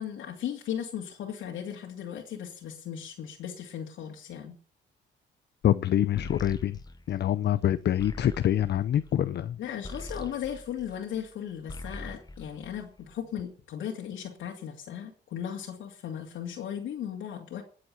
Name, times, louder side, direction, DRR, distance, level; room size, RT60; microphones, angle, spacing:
voice 1, 0.0-4.6 9.6-17.6, left 9 dB, 80° left, 2.6 m, -37 dB
voice 2, 5.6-6.8 7.1-9.6, left 11 dB, 55° left, 0.6 m, -25 dB
sound 1, 6.2-11.3 11.6-13.4, left 1 dB, 20° left, 1.1 m, -43 dB
19.5 x 7.7 x 5.8 m
cardioid pair, 90°, 20 cm